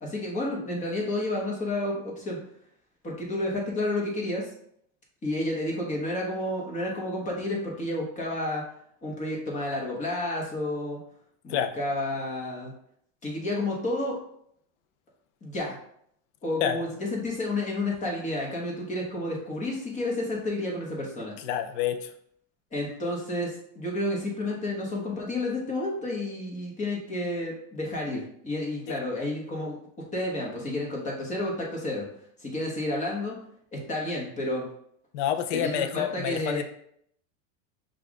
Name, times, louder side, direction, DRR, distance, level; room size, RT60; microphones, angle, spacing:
voice 1, 0.0-2.4 3.0-4.5 5.2-8.6 9.0-11.0 11.4-12.7 13.2-14.2 15.4-15.8 16.4-21.4 22.7-29.8 30.1-32.1 32.4-33.3 33.7-34.7 35.5-36.6, left 1 dB, 15° left, -2 dB, 1.0 m, -30 dB
voice 2, 21.4-22.1 28.9-29.0 35.1-36.6, left 9 dB, 55° left, 8 dB, 0.6 m, -28 dB
5.5 x 2.5 x 3.6 m, 0.68 s
supercardioid pair, 150°, 43 cm